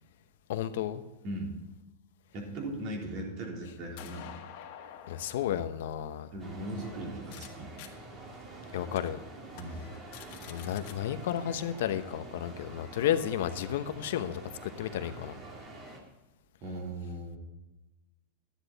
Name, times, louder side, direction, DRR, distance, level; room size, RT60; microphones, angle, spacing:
voice 1, 0.5-1.0 5.1-6.3 8.7-9.2 10.5-15.4, left 10 dB, 75° left, 10 dB, 0.9 m, -32 dB
voice 2, 2.3-4.4 6.3-7.7 9.6-9.9 16.6-17.4, right 1 dB, 45° right, 0 dB, 3.7 m, -38 dB
sound 1, 2.8-7.5 7.8-7.9 8.4-8.5 9.0-9.1 9.5-9.6 9.9-11.0, left 10 dB, 55° left, 1.7 m, -50 dB
Shopping Mall - Stratford, 6.4-16.0, right 2 dB, 30° right, 2.6 m, -47 dB
12.0 x 10.0 x 4.1 m, 1.1 s
supercardioid pair, 140°, 0 cm